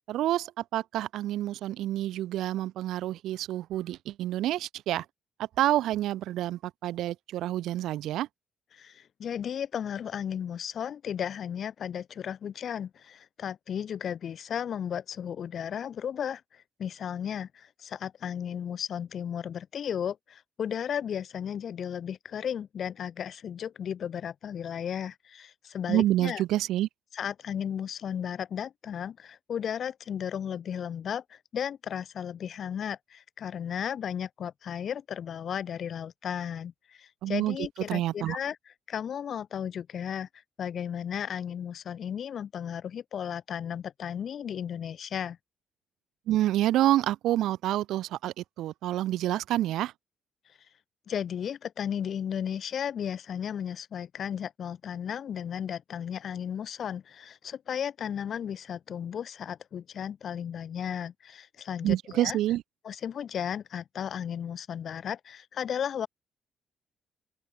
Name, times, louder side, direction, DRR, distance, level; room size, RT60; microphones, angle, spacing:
voice 1, 0.1-5.1 5.6-8.3 25.9-26.9 37.2-38.4 46.3-49.9 61.8-62.6, right 13 dB, 80° right, 0.5 m, -28 dB
voice 2, 8.7-26.4 27.1-38.6 38.9-40.3 40.6-45.4 51.1-62.4 62.8-66.1, left 8 dB, 60° left, 3.2 m, -34 dB
open air
supercardioid pair, 60°, 0 cm